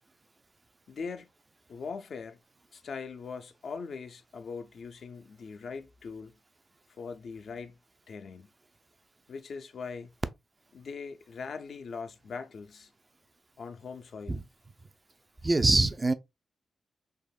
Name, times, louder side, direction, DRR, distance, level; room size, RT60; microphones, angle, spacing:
voice 1, 0.9-1.3 1.7-2.4 2.7-6.3 6.9-7.8 8.1-8.5 9.3-10.1 10.7-12.9 13.6-14.5, left 5 dB, 65° left, 0.4 m, -41 dB
voice 2, 15.4-16.1, right 2 dB, 30° right, 0.3 m, -24 dB
3.5 x 2.0 x 2.3 m
supercardioid pair, 50°, 0 cm